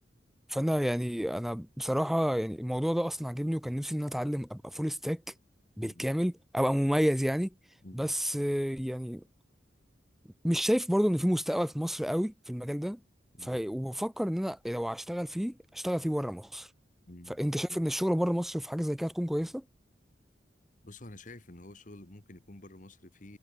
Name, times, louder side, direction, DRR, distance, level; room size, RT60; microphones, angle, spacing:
voice 1, 0.5-5.2 5.8-7.5 7.9-9.2 10.4-13.0 13.4-16.7 17.4-19.6, equal, ahead, 0.5 m, -30 dB
voice 2, 7.8-8.1 13.4-13.6 17.1-17.4 20.8-23.4, left 2 dB, 45° left, 1.8 m, -49 dB
head